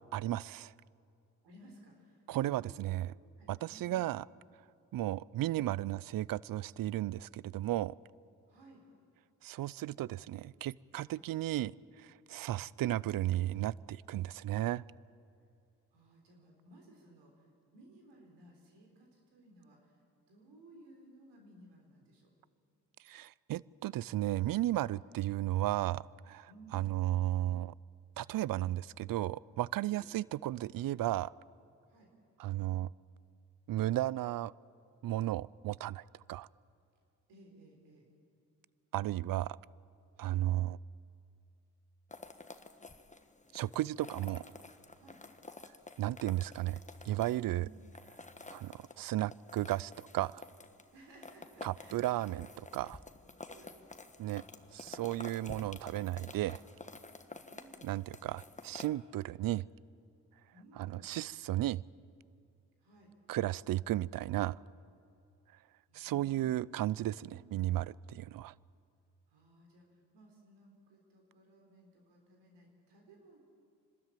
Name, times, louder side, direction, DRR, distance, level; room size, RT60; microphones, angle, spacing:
voice 1, 0.1-0.7 2.3-3.1 3.5-4.2 4.9-8.0 9.4-14.8 23.0-27.7 28.2-31.3 32.4-32.9 33.7-34.5 35.0-36.0 36.3-36.5 38.9-39.6 40.2-40.8 43.5-44.4 46.0-46.8 47.0-47.7 48.5-50.4 51.6-52.5 52.7-53.0 54.2-54.4 54.7-56.6 57.8-59.6 60.8-61.8 63.3-64.6 65.9-68.5, right 14 dB, 55° right, 23 dB, 0.5 m, -34 dB
voice 2, 1.4-2.2 2.5-2.7 3.4-3.9 8.5-8.8 11.0-11.2 15.9-17.4 17.7-20.0 20.3-22.3 24.9-25.0 26.5-26.9 29.9-30.1 31.9-32.1 37.3-38.1 40.2-40.4 45.0-45.2 47.6-47.8 50.9-52.5 53.4-53.7 57.5-57.9 60.5-61.0 62.8-63.1 65.9-66.7 67.2-67.5 69.3-69.9 70.1-73.4, right 1 dB, 85° right, 1 dB, 3.8 m, -59 dB
sound 1, 42.1-58.9, left 3 dB, 20° left, 1.4 m, -51 dB
25.5 x 13.0 x 8.9 m, 2.5 s
supercardioid pair, 45°, 40 cm